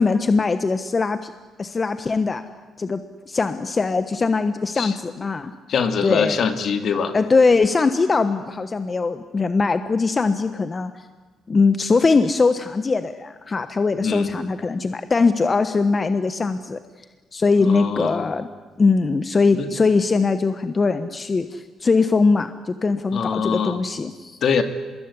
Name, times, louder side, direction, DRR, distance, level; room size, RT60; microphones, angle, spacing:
voice 1, 0.0-1.3 1.6-2.4 2.8-5.5 6.0-6.5 7.1-10.9 11.5-16.8 17.3-18.5 18.8-24.4, left 4 dB, 30° left, 10 dB, 1.2 m, -21 dB
voice 2, 5.7-7.1 14.0-14.3 17.6-18.3 19.5-19.7 23.1-23.8 24.4-24.6, left 6 dB, 60° left, 7 dB, 2.5 m, -23 dB
24.5 x 21.0 x 9.8 m, 1.3 s
cardioid pair, 90°, 0 cm